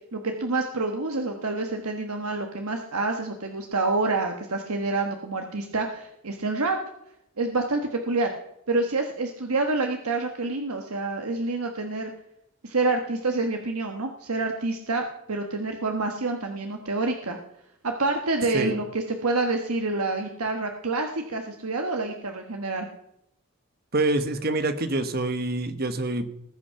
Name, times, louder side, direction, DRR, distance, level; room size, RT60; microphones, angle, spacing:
voice 1, 0.1-6.8 7.4-8.3 8.7-12.1 12.6-17.4 17.8-22.9, right 3 dB, 85° right, 4 dB, 1.4 m, -27 dB
voice 2, 23.9-26.3, right 2 dB, 45° right, 9 dB, 1.2 m, -26 dB
20.0 x 8.4 x 5.8 m, 0.79 s
head